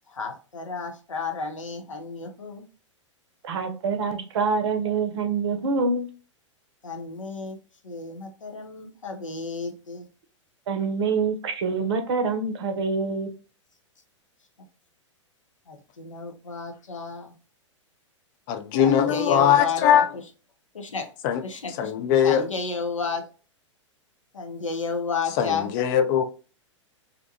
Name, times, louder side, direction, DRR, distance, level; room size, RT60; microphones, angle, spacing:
voice 1, 0.1-2.6 6.8-7.6 7.8-10.1 15.7-17.3 18.8-20.2 20.7-21.1 21.4-21.9 22.2-23.3 24.3-25.7, left 4 dB, 80° left, 0.6 m, -32 dB
voice 2, 3.4-6.0 10.7-13.3, right 4 dB, 60° right, 0.6 m, -25 dB
voice 3, 18.5-20.1 21.2-21.4 21.8-22.5 25.4-26.2, left 9 dB, 40° left, 0.4 m, -20 dB
2.5 x 2.2 x 2.6 m
figure-of-eight pair, 100°, 16 cm